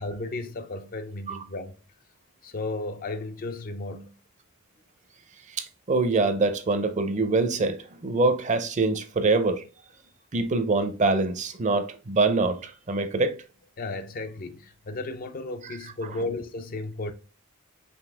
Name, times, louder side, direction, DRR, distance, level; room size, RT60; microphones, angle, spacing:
voice 1, 0.0-1.7 2.4-4.1 13.8-17.1, left 2 dB, 40° left, 0.5 m, -34 dB
voice 2, 5.5-9.6 10.3-13.4 15.6-15.8, right 3 dB, 35° right, 0.5 m, -24 dB
5.3 x 2.7 x 3.4 m
head